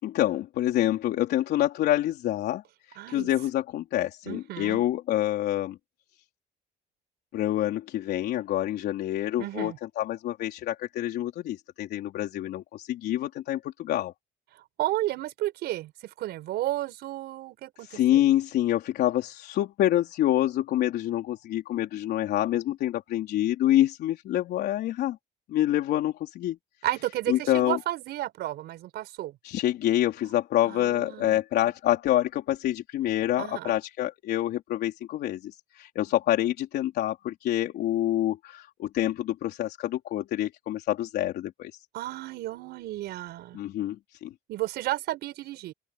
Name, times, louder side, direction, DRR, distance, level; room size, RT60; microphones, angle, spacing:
voice 1, 0.0-2.6 2.9-5.8 7.3-14.1 17.8-25.2 25.5-26.6 27.3-27.8 29.4-41.8 43.5-44.3, left 13 dB, 75° left, 3.8 m, -27 dB
voice 2, 3.0-3.3 4.3-4.8 9.4-9.8 14.5-18.2 26.8-29.4 30.7-31.4 33.4-33.8 41.9-43.6 44.5-45.7, right 15 dB, 80° right, 5.2 m, -32 dB
open air
cardioid pair, 110°, 17 cm